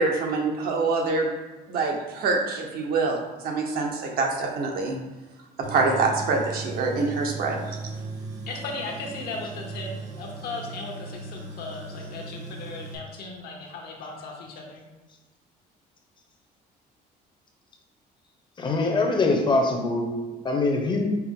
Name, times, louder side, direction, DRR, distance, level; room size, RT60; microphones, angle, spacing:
voice 1, 0.0-1.3 1.7-5.0 5.6-7.8, right 3 dB, 65° right, 1 dB, 0.9 m, -25 dB
Tools, 5.6-13.0, right 3 dB, 85° right, 0.8 m, -37 dB
voice 2, 8.5-14.9, left 3 dB, 70° left, 1 dB, 0.9 m, -37 dB
voice 3, 18.6-21.1, left 2 dB, 25° left, 3 dB, 0.7 m, -23 dB
5.7 x 2.1 x 3.6 m, 1.2 s
cardioid pair, 110°, 17 cm